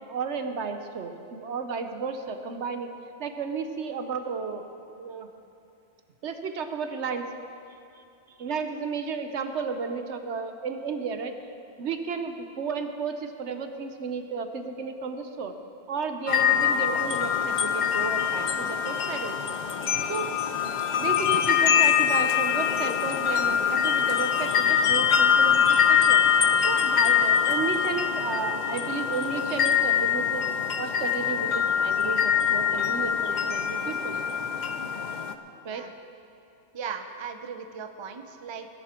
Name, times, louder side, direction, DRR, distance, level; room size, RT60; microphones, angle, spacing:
voice 1, 0.0-2.9 3.2-4.7 4.9-5.3 6.2-7.3 8.0-8.1 8.4-11.3 11.8-15.6 15.9-19.6 20.0-20.3 21.0-26.2 26.6-30.5 30.8-34.2 35.6-35.8, right 5 dB, 70° right, 7 dB, 1.1 m, -33 dB
sound 1, 16.3-35.3, left 8 dB, 50° left, 0.6 m, -24 dB
voice 2, 36.7-38.7, right 6 dB, 30° right, 7 dB, 0.6 m, -38 dB
18.0 x 11.0 x 4.4 m, 2.6 s
omnidirectional pair, 1.2 m